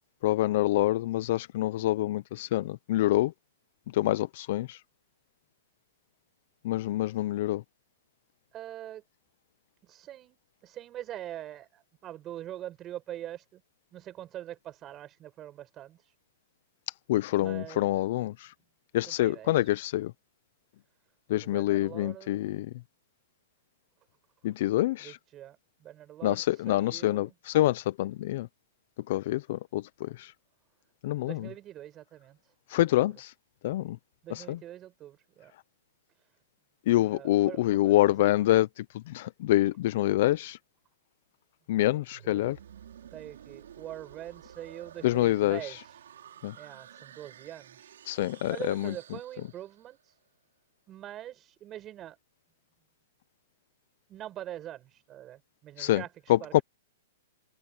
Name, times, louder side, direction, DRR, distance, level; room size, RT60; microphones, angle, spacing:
voice 1, 0.2-3.3 3.9-4.8 6.6-7.6 17.1-18.5 18.9-20.1 21.3-22.7 24.4-25.2 26.2-28.5 29.1-30.3 31.0-31.5 32.7-33.3 33.6-34.0 34.3-34.6 36.9-40.6 41.7-42.6 45.0-45.8 46.4-46.5 48.1-48.9 55.8-56.0 56.3-56.6, left 15 dB, 55° left, 0.5 m, -26 dB
voice 2, 8.5-9.0 9.8-13.6 13.9-16.1 17.4-17.9 19.1-19.7 21.4-22.4 25.0-27.3 31.2-33.1 34.2-35.5 37.0-38.6 42.2-42.5 43.1-46.0 46.5-50.2 50.9-52.2 54.1-56.1 56.4-56.6, right 12 dB, 25° right, 6.3 m, -44 dB
sound 1, 42.1-50.0, right 9 dB, 80° right, 5.9 m, -51 dB
hypercardioid pair, 150°, 0 cm